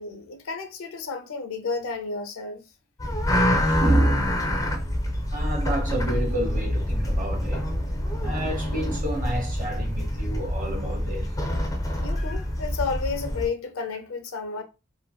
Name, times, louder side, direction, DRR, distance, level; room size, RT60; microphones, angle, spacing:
voice 1, 0.0-2.6 7.9-8.1 12.0-14.6, left 4 dB, 85° left, 0.5 m, -32 dB
sound 1, 3.0-13.5, left 1 dB, 15° left, 0.4 m, -26 dB
voice 2, 3.5-4.4 5.3-7.7 8.2-11.3 12.1-12.4, right 1 dB, 40° right, 1.0 m, -28 dB
2.6 x 2.5 x 2.2 m
head